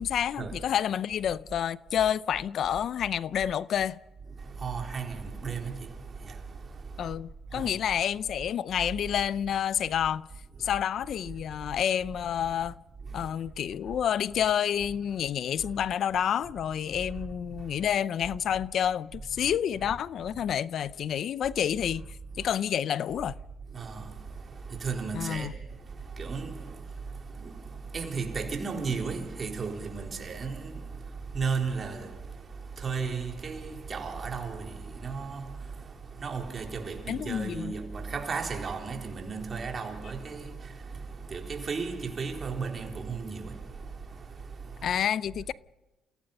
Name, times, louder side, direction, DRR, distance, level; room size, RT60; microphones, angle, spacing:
voice 1, 0.0-4.0 7.0-10.2 10.6-12.7 13.1-22.1 22.4-23.3 25.1-25.5 37.1-37.7 44.8-45.5, left 9 dB, 65° left, 0.6 m, -29 dB
voice 2, 4.4-7.1 7.5-7.8 10.6-10.8 13.0-13.3 19.4-19.5 22.4-22.5 23.7-45.0, right 5 dB, 40° right, 4.0 m, -35 dB
28.5 x 16.5 x 5.4 m
cardioid pair, 90°, 0 cm